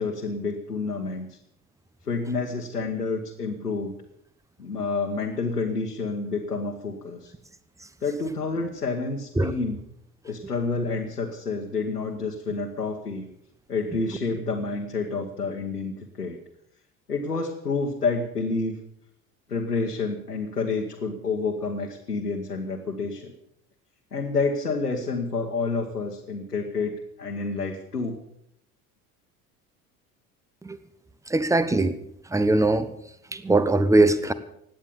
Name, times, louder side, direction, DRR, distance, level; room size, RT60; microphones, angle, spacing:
voice 1, 0.0-1.4 2.0-3.9 4.6-7.3 8.0-9.8 10.2-13.3 13.7-16.4 17.1-18.8 19.5-23.3 24.1-28.2, left 4 dB, 90° left, 1 dB, 1.3 m, -29 dB
voice 2, 31.3-32.0 32.3-32.9 33.3-34.3, right 2 dB, 5° right, 14 dB, 1.2 m, -21 dB
17.0 x 10.0 x 7.0 m, 0.75 s
figure-of-eight pair, 65°, 45 cm